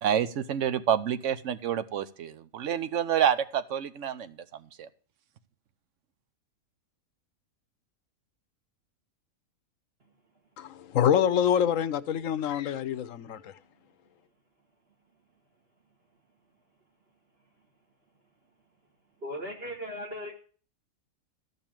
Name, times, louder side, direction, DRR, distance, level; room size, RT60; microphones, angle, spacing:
voice 1, 0.0-4.3 4.8-4.9, right 9 dB, 60° right, 1.1 m, -28 dB
voice 2, 10.6-13.5, left 9 dB, 70° left, 1.1 m, -26 dB
voice 3, 19.2-20.3, equal, 45° right, 2.1 m, -37 dB
14.0 x 5.5 x 8.8 m
omnidirectional pair, 1.5 m